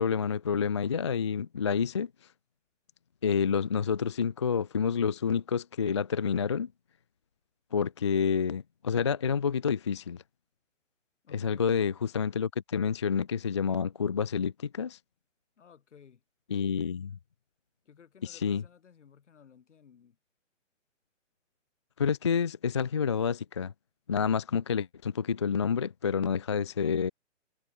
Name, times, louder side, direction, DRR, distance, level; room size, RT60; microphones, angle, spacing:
voice 1, 0.0-2.1 3.2-6.7 7.7-10.2 11.3-15.0 16.5-17.2 18.2-18.6 22.0-23.7 24.1-27.1, left 6 dB, 25° left, 0.4 m, -28 dB
voice 2, 11.2-11.8 15.6-16.2 17.8-20.2, left 7 dB, 65° left, 5.7 m, -56 dB
hypercardioid pair, 140°, 38 cm